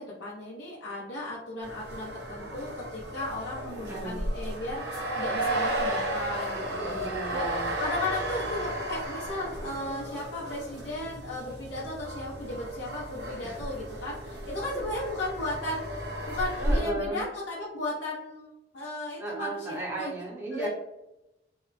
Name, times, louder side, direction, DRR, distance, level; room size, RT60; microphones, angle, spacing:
voice 1, 0.0-6.9 7.3-7.4 7.8-15.9 16.3-20.1 20.5-20.7, left 2 dB, 85° left, -6 dB, 0.6 m, -35 dB
sound 1, 1.6-16.8, right 1 dB, 80° right, 0.8 m, -33 dB
voice 2, 3.9-4.2 6.8-7.7 13.4-13.6 16.6-17.2 19.2-20.7, right 2 dB, 15° right, -4 dB, 0.6 m, -35 dB
2.8 x 2.1 x 2.4 m, 0.92 s
head